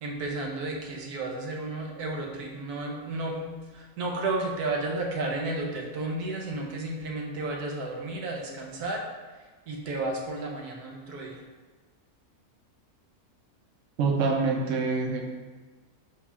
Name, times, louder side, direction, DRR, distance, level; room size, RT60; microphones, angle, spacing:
voice 1, 0.0-9.1 9.7-11.4, right 2 dB, 85° right, 0 dB, 1.4 m, -32 dB
voice 2, 14.0-15.3, right 4 dB, 60° right, 1 dB, 1.1 m, -26 dB
4.7 x 3.6 x 5.5 m, 1.4 s
omnidirectional pair, 1.6 m